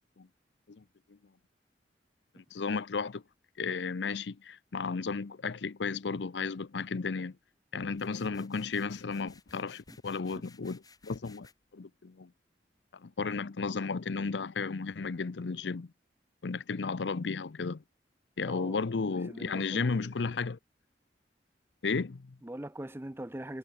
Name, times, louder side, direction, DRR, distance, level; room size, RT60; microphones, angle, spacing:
voice 1, 2.3-3.2 3.6-7.4 7.7-11.5 11.7-12.3 12.9-15.9 16.4-17.8 18.4-20.6 21.8-22.4, left 4 dB, 85° left, 0.6 m, -34 dB
sound 1, 7.9-11.5, left 4 dB, 20° left, 6.2 m, -59 dB
voice 2, 18.5-18.9 19.3-20.3 22.4-23.6, right 1 dB, 15° right, 0.7 m, -42 dB
head